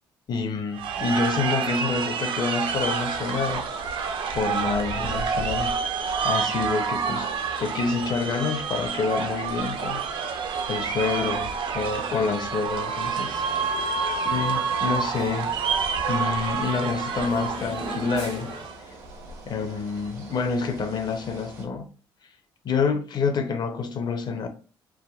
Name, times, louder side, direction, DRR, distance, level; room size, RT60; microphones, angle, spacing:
voice 1, 0.3-3.7 4.3-5.8 6.2-7.3 7.6-10.4 10.7-13.4 13.8-14.0 14.3-15.6 16.1-18.6 19.5-21.9 22.6-24.5, left 5 dB, 45° left, 0.5 m, -28 dB
sound 1, 0.7-18.8, right 6 dB, 60° right, 0.4 m, -28 dB
sound 2, 2.6-21.7, right 2 dB, 80° right, 0.8 m, -42 dB
sound 3, 13.3-18.7, left 1 dB, 85° left, 1.1 m, -42 dB
3.4 x 2.2 x 2.3 m
supercardioid pair, 70°, 10 cm